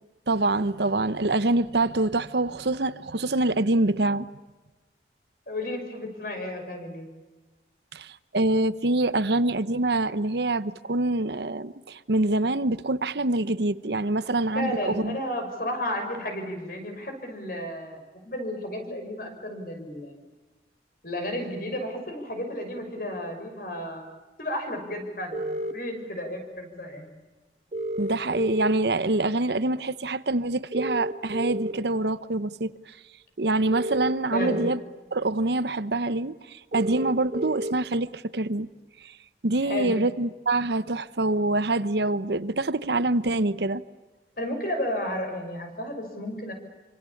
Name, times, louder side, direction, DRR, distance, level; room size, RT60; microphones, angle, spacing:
voice 1, 0.3-4.3 7.9-15.2 28.0-32.7 33.4-34.8 35.1-38.7 39.0-39.1 39.4-43.8, right 2 dB, 70° right, 0.9 m, -25 dB
voice 2, 5.5-7.1 14.5-20.1 21.0-24.1 24.4-27.1 34.3-34.6 39.6-39.9 44.4-46.5, left 1 dB, 50° left, 6.3 m, -33 dB
sound 1, 25.3-25.7 27.7-28.7 30.7-31.7 33.7-34.7 36.7-37.7, right 1 dB, 40° right, 1.3 m, -30 dB
27.0 x 25.5 x 8.7 m
head